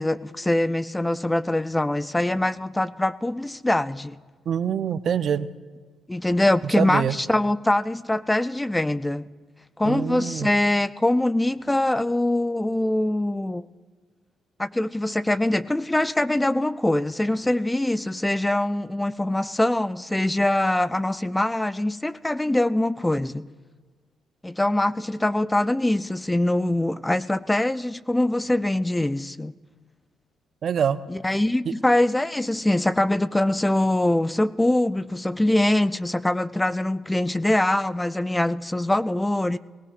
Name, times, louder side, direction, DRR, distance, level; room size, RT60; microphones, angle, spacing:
voice 1, 0.0-4.2 6.1-9.3 9.8-13.7 14.6-23.5 24.4-29.5 31.1-39.6, left 1 dB, 10° left, 0.3 m, -23 dB
voice 2, 4.5-5.5 6.8-7.2 9.8-10.5 30.6-31.0 31.7-31.8, right 8 dB, 60° right, 0.5 m, -25 dB
20.0 x 18.5 x 2.5 m
cardioid pair, 90°, 0 cm